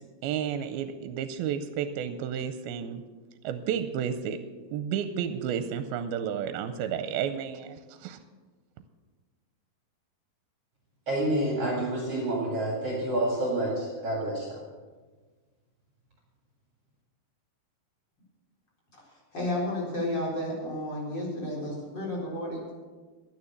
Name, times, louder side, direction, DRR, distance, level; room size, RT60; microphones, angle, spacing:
voice 1, 0.2-3.0 3.4-4.4 4.7-8.2, right 8 dB, 85° right, 10 dB, 2.4 m, -31 dB
voice 2, 11.1-14.6, right 1 dB, 45° right, -2 dB, 2.6 m, -28 dB
voice 3, 19.3-22.7, left 1 dB, 30° left, -4 dB, 4.4 m, -32 dB
11.5 x 9.7 x 7.1 m, 1.4 s
omnidirectional pair, 4.4 m